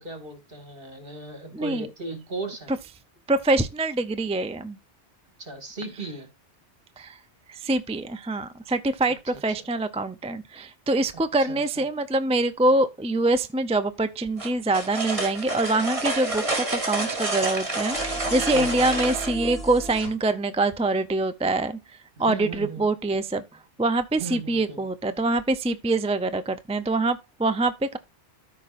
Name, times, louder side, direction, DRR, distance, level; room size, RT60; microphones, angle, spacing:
voice 1, 0.0-2.7 5.4-6.3 9.3-9.4 11.4-11.9 18.5-19.1 22.2-22.9 24.2-24.8, right 3 dB, 55° right, 2.4 m, -37 dB
voice 2, 1.5-1.9 3.3-4.8 7.0-7.2 7.5-21.8 22.2-23.4 23.8-28.0, right 2 dB, 10° right, 0.3 m, -25 dB
sound 1, 14.4-19.3, right 2 dB, 30° right, 2.2 m, -28 dB
sound 2, 17.9-20.1, right 1 dB, 65° left, 1.9 m, -35 dB
13.5 x 5.2 x 2.5 m
omnidirectional pair, 1.1 m